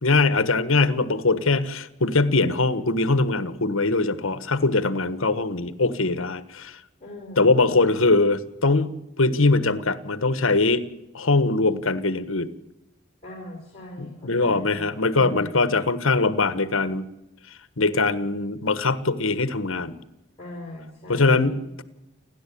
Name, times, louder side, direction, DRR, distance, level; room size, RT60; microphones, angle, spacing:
voice 1, 0.0-6.8 7.4-10.8 11.1-12.5 14.0-17.0 17.8-20.0 21.1-21.8, left 3 dB, 75° left, 13 dB, 1.4 m, -22 dB
voice 2, 7.0-7.7 13.2-15.7 20.4-21.7, left 1 dB, 30° left, -1 dB, 5.2 m, -40 dB
29.5 x 11.5 x 8.6 m, 0.96 s
head